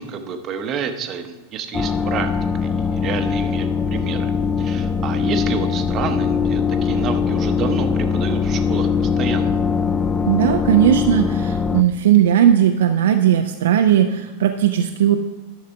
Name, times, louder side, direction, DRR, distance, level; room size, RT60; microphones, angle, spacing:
voice 1, 0.0-2.3 2.6-4.3 4.6-9.6, right 6 dB, 30° right, 8 dB, 0.8 m, -29 dB
sound 1, 1.7-11.8, left 6 dB, 15° left, 0.3 m, -21 dB
voice 2, 10.3-15.2, right 10 dB, 60° right, 5 dB, 0.4 m, -17 dB
11.5 x 6.6 x 3.4 m, 1.2 s
figure-of-eight pair, 90°, 0 cm